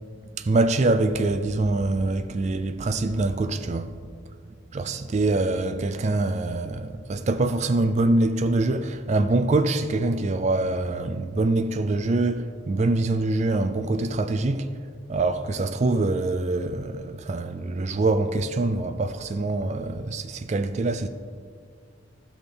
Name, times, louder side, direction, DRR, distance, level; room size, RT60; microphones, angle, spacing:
voice 1, 0.3-4.0 4.7-14.7 15.1-21.1, right 2 dB, 35° right, 0.3 m, -24 dB
12.5 x 6.3 x 3.4 m
head